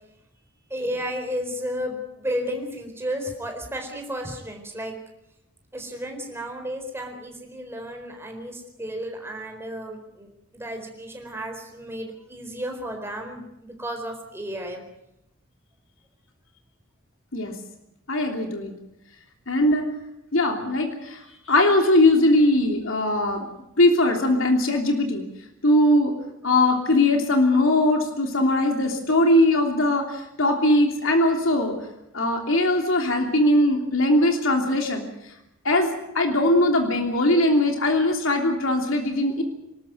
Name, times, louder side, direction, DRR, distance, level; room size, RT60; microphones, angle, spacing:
voice 1, 0.7-5.0 5.7-10.3 10.5-14.8, equal, 10° right, 3 dB, 4.3 m, -33 dB
voice 2, 18.1-18.7 19.5-19.9 20.3-23.4 23.8-25.2 25.6-26.1 26.4-31.7 32.1-35.1 35.6-39.4, left 1 dB, 70° left, 3 dB, 3.1 m, -20 dB
26.5 x 13.0 x 9.3 m, 0.85 s
head